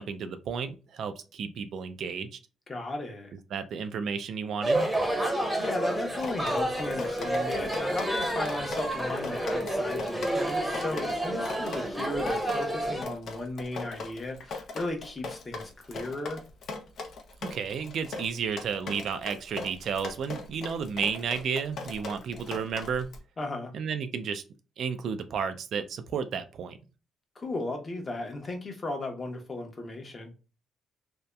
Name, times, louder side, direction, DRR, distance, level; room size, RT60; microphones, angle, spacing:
voice 1, 0.0-2.4 3.5-4.9 17.4-23.1 23.7-24.4 24.8-26.8, right 6 dB, 65° right, 9 dB, 0.3 m, -32 dB
voice 2, 2.7-3.3 5.6-16.4 23.4-23.7 27.4-30.3, left 2 dB, 30° left, 2 dB, 0.8 m, -36 dB
sound 1, 4.6-13.0, right 1 dB, 5° right, 0.8 m, -30 dB
Drip, 6.2-23.2, left 3 dB, 65° left, 0.6 m, -40 dB
2.6 x 2.1 x 2.2 m, 0.33 s
cardioid pair, 90°, 0 cm